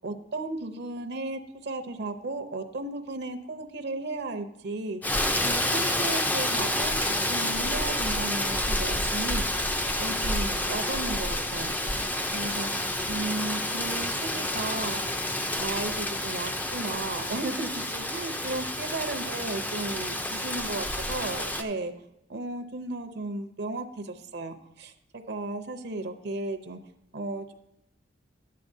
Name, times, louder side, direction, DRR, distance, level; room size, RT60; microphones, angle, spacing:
voice 1, 0.0-5.0 5.4-9.5 10.0-12.7 13.1-15.0 15.6-21.9 22.3-24.9 25.3-26.8 27.1-27.5, right 2 dB, 55° right, 7 dB, 0.6 m, -35 dB
Rain, 5.0-21.6, left 1 dB, 10° left, 0.4 m, -29 dB
12.5 x 8.4 x 2.6 m, 0.82 s
head